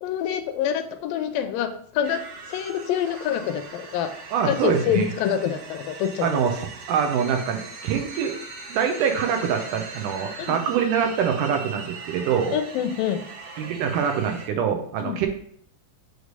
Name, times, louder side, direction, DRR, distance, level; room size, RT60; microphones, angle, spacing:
voice 1, 0.0-2.2 2.5-4.1 4.5-6.4 10.4-10.6 12.5-13.2 15.0-15.2, left 9 dB, 80° left, 8 dB, 2.1 m, -26 dB
sound 1, 2.0-14.5, right 4 dB, 65° right, 2.2 m, -40 dB
voice 2, 4.3-5.1 6.2-8.3 8.7-12.6 13.6-15.3, right 7 dB, 80° right, 4 dB, 2.0 m, -24 dB
6.4 x 3.2 x 5.2 m, 0.63 s
omnidirectional pair, 4.0 m